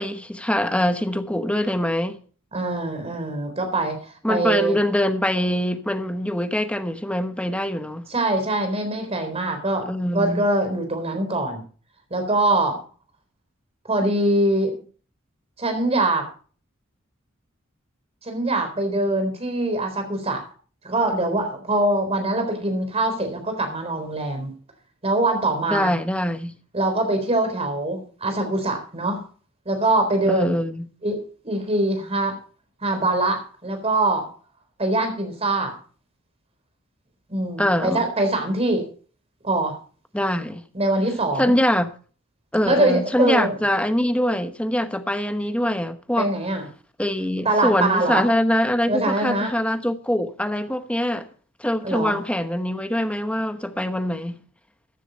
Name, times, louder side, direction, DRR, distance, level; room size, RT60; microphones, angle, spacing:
voice 1, 0.0-2.2 4.2-8.0 9.9-10.4 25.7-26.5 30.3-30.8 37.6-38.1 40.1-40.6 41.4-41.9 42.5-46.3 47.0-51.3 51.6-54.4, left 1 dB, 5° left, 1.1 m, -23 dB
voice 2, 2.5-4.8 8.1-9.9 10.1-11.6 12.1-12.8 13.8-14.8 15.6-16.3 18.2-20.4 20.8-24.5 25.0-25.9 26.7-29.2 29.7-30.5 31.0-32.4 32.8-34.3 34.8-35.8 37.3-38.9 39.4-39.8 40.7-41.5 42.6-43.5 46.2-46.7 47.4-48.3 48.9-49.5 51.8-52.2, right 2 dB, 30° right, 3.9 m, -23 dB
14.5 x 10.0 x 4.1 m
head